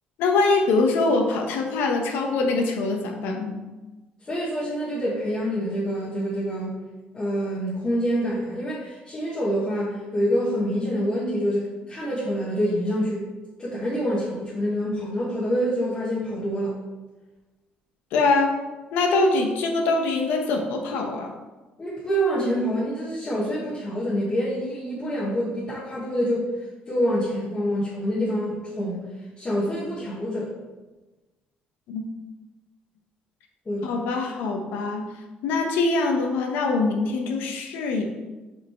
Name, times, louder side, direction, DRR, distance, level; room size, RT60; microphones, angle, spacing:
voice 1, 0.2-3.6 18.1-18.6 18.9-21.3 31.9-32.0 33.8-35.0 35.4-38.0, left 3 dB, 85° left, 3 dB, 1.0 m, -23 dB
voice 2, 4.3-6.7 7.1-13.2 13.6-16.7 21.8-26.5 26.9-29.0 29.4-30.5 33.6-34.0, equal, 20° left, -9 dB, 1.5 m, -26 dB
5.4 x 5.0 x 4.5 m, 1.2 s
cardioid pair, 165°, 3 cm